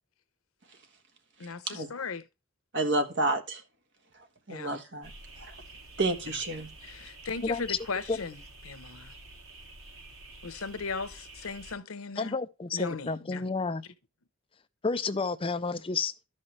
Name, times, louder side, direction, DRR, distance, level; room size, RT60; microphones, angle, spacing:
voice 1, 1.4-2.2 4.5-4.8 6.2-6.4 6.8-9.1 10.4-12.3 12.7-13.4, left 4 dB, 90° left, 0.9 m, -37 dB
voice 2, 2.7-3.6 4.5-5.1 5.4-5.5 6.0-6.7, right 2 dB, 60° right, 1.5 m, -29 dB
sound 1, 5.0-11.7, right 2 dB, 90° right, 3.0 m, -49 dB
voice 3, 7.4-7.8 8.1-8.2 12.2-13.8 14.8-16.1, left 4 dB, 25° left, 0.5 m, -30 dB
13.0 x 5.6 x 3.2 m
head